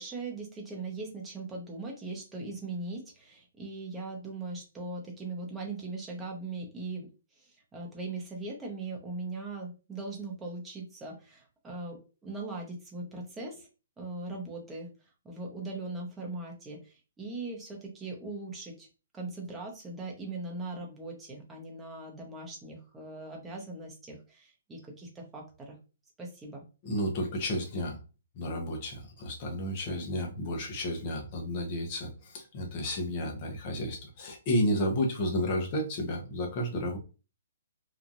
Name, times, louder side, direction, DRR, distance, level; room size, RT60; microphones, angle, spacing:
voice 1, 0.0-7.1 7.4-13.7 14.0-14.9 15.2-18.9 19.1-25.8 26.2-26.6, right 3 dB, 10° right, -1 dB, 0.8 m, -40 dB
voice 2, 26.8-28.0 28.3-37.0, equal, 35° left, 1 dB, 0.9 m, -32 dB
2.9 x 2.4 x 2.5 m, 0.33 s
hypercardioid pair, 150°, 0 cm